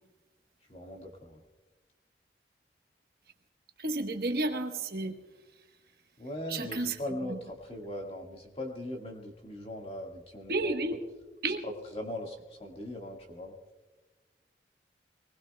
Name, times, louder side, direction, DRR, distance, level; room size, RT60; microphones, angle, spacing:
voice 1, 0.7-1.4 6.2-10.8 11.6-13.6, left 1 dB, 30° left, 1 dB, 1.8 m, -40 dB
voice 2, 3.8-5.2 6.5-7.0 7.3-7.4 10.5-11.0 11.4-11.6, right 2 dB, 55° right, 4 dB, 1.2 m, -31 dB
23.0 x 20.0 x 2.3 m, 1.2 s
head